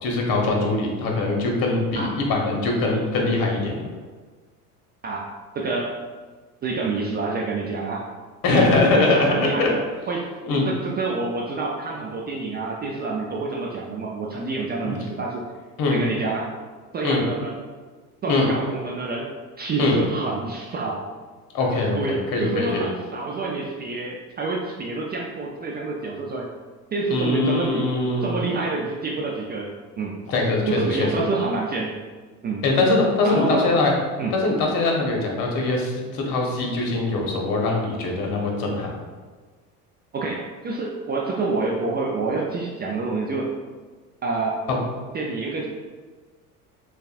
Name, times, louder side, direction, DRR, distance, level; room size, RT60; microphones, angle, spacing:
voice 1, 0.0-3.8 8.4-9.7 10.5-10.7 14.9-15.0 15.8-16.0 17.0-17.2 18.3-18.5 19.8-19.9 21.5-22.9 27.1-28.3 30.3-31.2 32.6-33.9 34.3-38.9, left 3 dB, 45° left, 0 dB, 1.2 m, -22 dB
voice 2, 5.0-6.0 6.6-8.1 8.5-9.8 10.1-15.4 15.9-16.5 16.9-17.6 18.2-19.3 19.6-21.0 22.0-26.5 26.9-27.9 28.2-29.7 30.0-30.2 30.7-32.0 32.4-32.6 33.2-33.7 34.2-34.3 40.1-43.5 44.2-44.6 45.1-45.7, right 3 dB, 20° right, -2 dB, 0.4 m, -27 dB
6.5 x 2.4 x 2.4 m, 1.4 s
hypercardioid pair, 70°, 46 cm